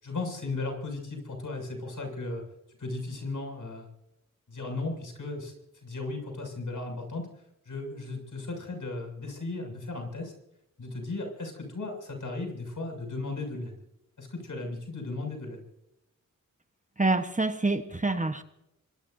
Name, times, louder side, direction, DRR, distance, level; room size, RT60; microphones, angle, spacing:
voice 1, 0.0-2.4 2.8-3.9 4.5-5.5 5.8-7.3 7.7-10.3 10.8-13.7 14.2-15.6, left 2 dB, 65° left, 2 dB, 7.0 m, -36 dB
voice 2, 17.0-18.4, right 2 dB, 25° right, 8 dB, 1.2 m, -26 dB
25.5 x 21.0 x 2.7 m, 0.84 s
wide cardioid pair, 90°, 33 cm